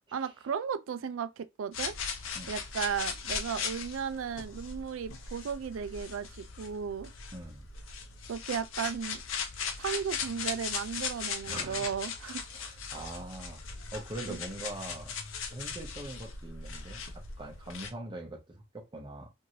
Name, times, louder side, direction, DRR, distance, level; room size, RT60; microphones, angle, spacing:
voice 1, 0.1-2.0 2.5-7.1 8.3-9.2 9.8-12.5 14.3-14.4, right 7 dB, 85° right, 0.4 m, -35 dB
sound 1, 1.7-17.9, left 6 dB, 85° left, 0.6 m, -39 dB
voice 2, 7.3-7.7 11.5-11.9 12.5-13.6 13.9-15.2 15.5-19.3, right 1 dB, 25° right, 0.7 m, -42 dB
3.0 x 2.6 x 2.7 m
head